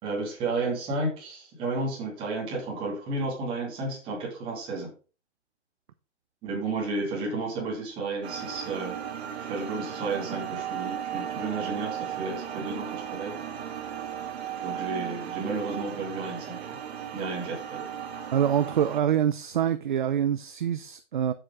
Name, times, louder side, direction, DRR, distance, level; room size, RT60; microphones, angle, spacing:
voice 1, 0.0-4.9 6.4-9.0 9.4-13.3 14.6-16.8 17.1-17.9, right 3 dB, 15° right, 2.7 m, -32 dB
sound 1, 8.2-19.0, right 9 dB, 60° right, 1.4 m, -36 dB
voice 2, 18.3-21.3, right 9 dB, 45° right, 0.5 m, -25 dB
7.5 x 7.5 x 4.6 m
hypercardioid pair, 170°, 35 cm